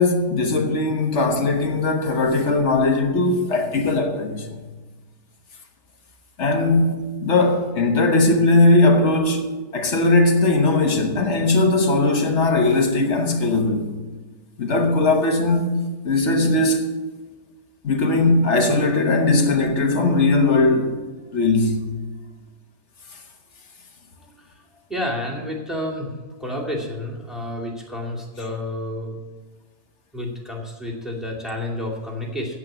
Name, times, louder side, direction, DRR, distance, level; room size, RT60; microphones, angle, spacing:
voice 1, 0.0-4.6 6.4-6.9 7.2-13.9 14.6-16.9 17.8-21.0 21.3-21.9, left 2 dB, 50° left, 1.4 m, -19 dB
voice 2, 24.9-26.1 26.4-29.2 30.1-32.6, left 1 dB, ahead, 2.3 m, -30 dB
8.5 x 8.1 x 8.7 m
omnidirectional pair, 1.6 m